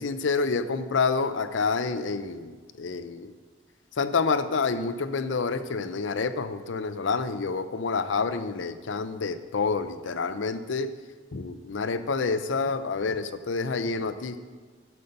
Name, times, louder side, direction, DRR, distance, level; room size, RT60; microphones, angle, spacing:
voice 1, 0.0-3.3 4.0-10.9 11.3-14.4, left 4 dB, 85° left, 11 dB, 0.6 m, -28 dB
11.0 x 5.5 x 6.6 m, 1.5 s
head